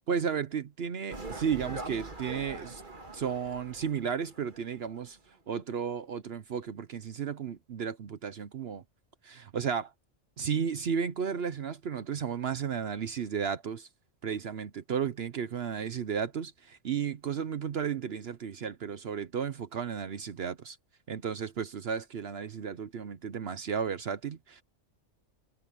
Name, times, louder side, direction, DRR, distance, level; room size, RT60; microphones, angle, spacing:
voice 1, 0.1-2.8 3.1-5.2 5.5-8.8 9.2-9.9 10.4-13.9 14.2-20.8 21.1-24.6, right 7 dB, 55° right, 1.0 m, -33 dB
sound 1, 1.1-5.0 5.3-5.4, right 2 dB, 40° right, 2.4 m, -43 dB
omnidirectional pair, 1.3 m